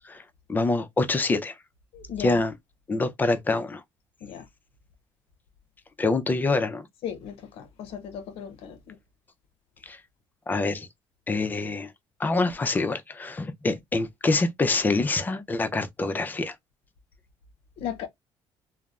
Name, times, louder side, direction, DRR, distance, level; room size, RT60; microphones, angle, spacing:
voice 1, 0.5-1.6 2.2-2.5 2.9-3.8 6.0-6.9 9.8-10.0 10.5-10.9 11.3-11.9 12.2-16.5, left 3 dB, 20° left, 0.4 m, -25 dB
voice 2, 1.9-2.5 4.2-4.4 7.0-9.0 17.8-18.1, left 8 dB, 80° left, 0.6 m, -36 dB
3.1 x 2.0 x 2.3 m
cardioid pair, 135°, 10 cm